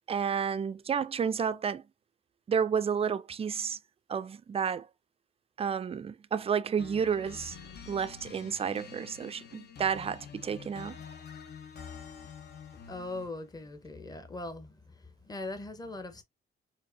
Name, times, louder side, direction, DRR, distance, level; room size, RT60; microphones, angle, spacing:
voice 1, 0.1-1.8 2.5-3.8 4.1-4.9 5.6-7.6 7.9-11.0, right 7 dB, 30° right, 0.4 m, -31 dB
sound 1, 6.8-13.5, left 7 dB, 50° left, 0.9 m, -47 dB
voice 2, 12.9-14.8 15.3-16.2, left 2 dB, 20° left, 0.9 m, -40 dB
4.4 x 2.6 x 2.6 m
cardioid pair, 90°, 21 cm